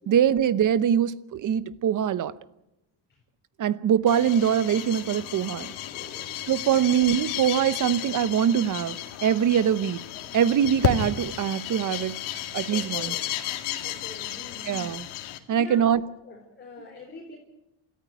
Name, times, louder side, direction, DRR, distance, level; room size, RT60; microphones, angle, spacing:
voice 1, 0.1-2.3 3.6-5.7 6.5-9.0 9.2-10.0 10.3-12.2 12.5-13.1 14.7-15.0 15.5-16.0, right 9 dB, 40° right, 0.9 m, -23 dB
sound 1, 4.1-15.4, left 12 dB, 85° left, 2.2 m, -33 dB
voice 2, 5.9-6.4 6.6-6.9 12.7-13.3 13.8-14.8 15.3-17.4, left 3 dB, 20° left, 4.3 m, -45 dB
27.0 x 14.0 x 9.1 m
cardioid pair, 135°, 47 cm